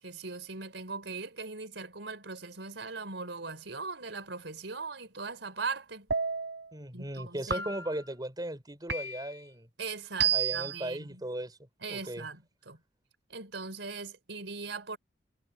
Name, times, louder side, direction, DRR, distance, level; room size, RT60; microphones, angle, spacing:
voice 1, 0.0-6.1 6.9-7.7 9.8-11.2 11.8-12.8 13.3-15.0, right 4 dB, 90° right, 3.9 m, -40 dB
sound 1, 6.1-6.7 7.5-8.1 8.9-9.5 10.2-10.8, right 7 dB, 75° right, 4.4 m, -31 dB
voice 2, 6.7-9.7 10.3-11.6 11.9-12.3, right 1 dB, 25° right, 5.3 m, -37 dB
head